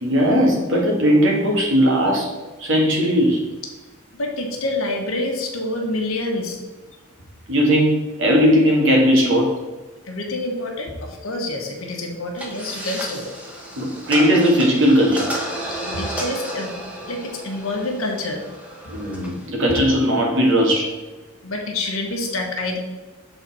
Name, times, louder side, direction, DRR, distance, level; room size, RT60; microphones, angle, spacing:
voice 1, 0.0-2.3 2.6-3.4 7.5-9.5 13.8-15.3 18.9-20.9, equal, 65° right, -2 dB, 1.8 m, -18 dB
voice 2, 4.1-6.6 10.0-13.3 15.5-16.7 17.1-18.4 21.4-22.8, left 2 dB, 80° left, 1 dB, 1.3 m, -27 dB
sound 1, 12.3-19.5, right 1 dB, 5° right, 1.1 m, -32 dB
7.2 x 4.0 x 4.1 m, 1.2 s
head